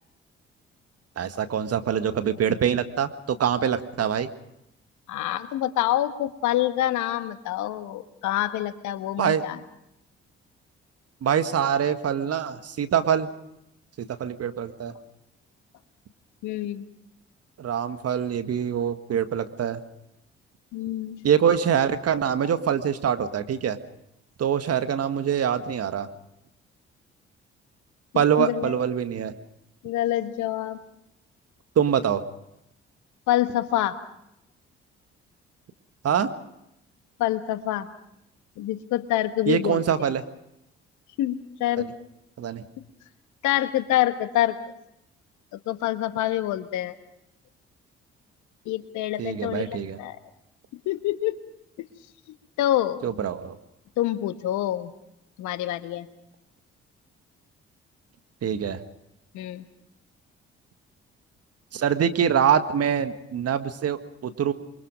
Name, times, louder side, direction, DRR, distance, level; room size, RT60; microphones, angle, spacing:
voice 1, 1.2-4.3 9.2-9.4 11.2-13.3 14.0-14.9 17.6-19.8 21.2-23.8 24.4-26.1 28.1-29.3 31.8-32.2 36.0-36.3 39.5-40.2 41.8-41.9 42.4-42.6 49.2-50.0 53.0-53.6 58.4-58.8 61.7-64.5, right 8 dB, 50° right, 9 dB, 1.8 m, -24 dB
voice 2, 5.1-9.6 16.4-16.8 20.7-21.2 28.1-28.8 29.8-30.8 33.3-34.0 37.2-37.9 38.6-40.1 41.2-41.9 43.4-44.6 45.7-46.9 48.6-50.2 50.8-51.3 52.6-53.0 54.0-54.9 55.4-56.1 59.3-59.6, left 13 dB, 65° left, 11 dB, 1.5 m, -26 dB
28.0 x 23.5 x 5.1 m, 0.82 s
figure-of-eight pair, 45°, 32 cm